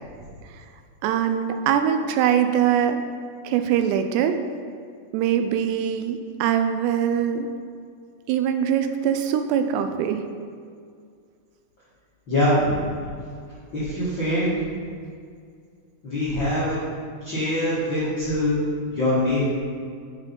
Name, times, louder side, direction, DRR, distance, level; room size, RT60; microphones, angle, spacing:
voice 1, 1.0-3.0 3.4-4.4 5.1-7.5 8.3-10.3, right 9 dB, 85° right, 7 dB, 2.6 m, -22 dB
voice 2, 12.3-12.8 13.7-14.5 16.0-16.7 17.2-18.6 18.9-19.6, left 1 dB, 60° left, -12 dB, 1.3 m, -23 dB
7.8 x 4.8 x 5.3 m, 2.2 s
omnidirectional pair, 4.9 m